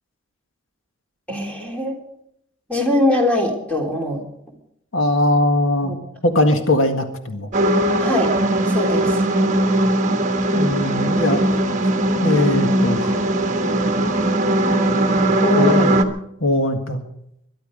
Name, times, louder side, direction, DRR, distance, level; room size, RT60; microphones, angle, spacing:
voice 1, 1.3-2.0 2.7-4.2 5.8-6.0 8.0-8.3 8.6-9.2 15.4-16.0, left 1 dB, 5° left, 0 dB, 3.4 m, -22 dB
voice 2, 4.9-5.9 6.2-7.5 10.5-11.6 12.2-13.2 15.5-15.9 16.4-17.0, left 1 dB, 75° left, 5 dB, 1.8 m, -20 dB
sound 1, 7.5-16.0, right 1 dB, 35° right, 1.3 m, -19 dB
22.0 x 11.5 x 5.2 m, 0.76 s
head